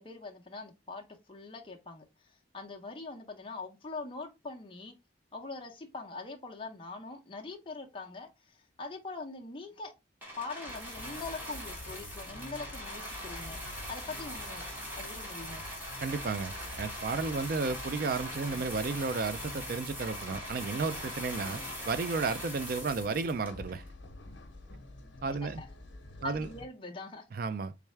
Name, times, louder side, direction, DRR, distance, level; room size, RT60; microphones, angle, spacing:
voice 1, 0.0-4.9 5.3-9.9 10.4-14.6 15.0-15.6 25.4-25.7 26.2-27.3, left 3 dB, 25° left, 0.7 m, -43 dB
sound 1, 10.2-23.9 24.6-24.7, equal, 10° right, 1.2 m, -41 dB
sound 2, 10.7-26.7, left 1 dB, 70° left, 0.8 m, -48 dB
voice 2, 16.0-23.8 25.2-25.6 26.2-26.5 27.3-27.7, right 4 dB, 45° right, 0.4 m, -33 dB
3.6 x 3.3 x 3.2 m
head